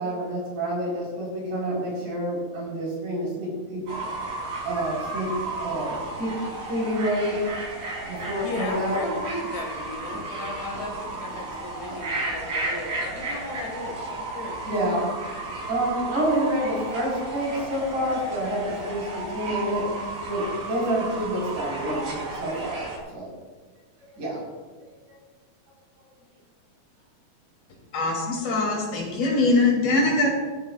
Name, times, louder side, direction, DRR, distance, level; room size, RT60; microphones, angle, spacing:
voice 1, 0.0-4.1 4.6-7.5 8.1-9.0 10.3-10.7 14.7-15.1 15.7-19.9 20.3-22.8 23.1-23.3 24.1-24.4 25.1-25.2, right 1 dB, 55° right, -4 dB, 6.0 m, -28 dB
Fowl / Bird, 3.9-23.0, right 2 dB, 90° right, 5.5 m, -33 dB
voice 2, 8.4-14.7, left 2 dB, 65° left, 1 dB, 3.4 m, -36 dB
voice 3, 27.9-30.3, left 2 dB, 85° left, -2 dB, 4.9 m, -22 dB
15.5 x 14.0 x 2.4 m, 1.4 s
omnidirectional pair, 4.1 m